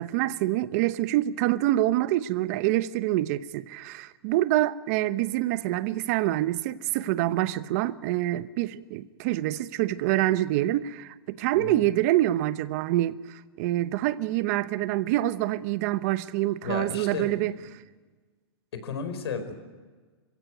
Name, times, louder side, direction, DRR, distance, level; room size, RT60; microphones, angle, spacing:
voice 1, 0.0-17.5, right 15 dB, 40° right, 0.9 m, -26 dB
voice 2, 11.5-11.8 16.6-17.7 18.7-19.5, left 5 dB, 80° left, 4.9 m, -34 dB
27.0 x 16.5 x 9.4 m
hypercardioid pair, 155°, 13 cm